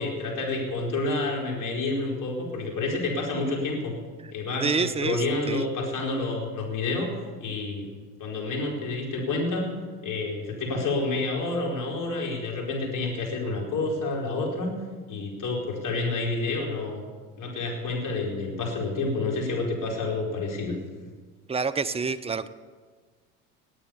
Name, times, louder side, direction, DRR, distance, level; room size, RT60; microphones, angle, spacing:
voice 1, 0.0-3.9 4.3-7.1 7.4-7.8 8.2-9.7 10.0-14.7 15.1-17.0 17.4-20.8, left 3 dB, 40° left, -1 dB, 4.8 m, -29 dB
voice 2, 4.6-5.7 21.5-22.5, right 5 dB, 15° right, 14 dB, 0.7 m, -28 dB
19.0 x 8.8 x 7.0 m, 1.5 s
figure-of-eight pair, 60°, 47 cm